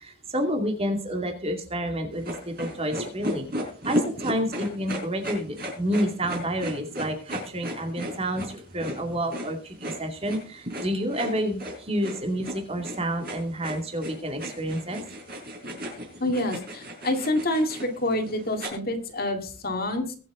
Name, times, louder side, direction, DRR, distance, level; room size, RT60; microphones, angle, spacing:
voice 1, 0.0-15.0, equal, 25° right, 4 dB, 2.4 m, -29 dB
sound 1, 2.2-18.7, equal, 45° right, 5.4 m, -35 dB
voice 2, 16.2-20.1, left 1 dB, 45° left, 5 dB, 2.1 m, -27 dB
22.0 x 7.6 x 3.8 m, 0.39 s
head